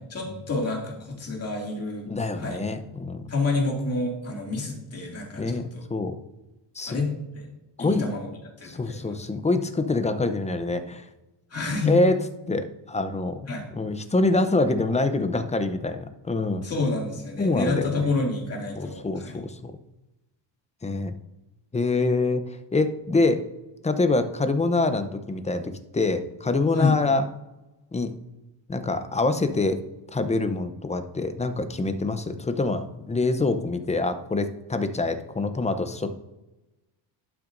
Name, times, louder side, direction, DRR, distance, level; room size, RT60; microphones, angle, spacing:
voice 1, 0.0-2.1 2.4-2.6 3.3-5.8 6.9-7.5 7.8-8.3 8.6-9.2 11.5-11.9 13.5-13.7 16.6-19.4 26.7-27.0, left 3 dB, 30° left, -1 dB, 2.5 m, -28 dB
voice 2, 2.1-3.2 5.4-6.2 6.8-7.0 7.8-8.1 8.6-11.0 11.9-12.2 12.5-13.4 13.7-16.7 17.4-17.9 18.8-19.7 20.8-21.1 21.7-23.4 23.8-27.2 27.9-28.1 28.7-29.8 30.1-36.1, left 3 dB, 15° left, 9 dB, 0.6 m, -25 dB
12.0 x 5.9 x 2.6 m, 1.0 s
cardioid pair, 105°, 46 cm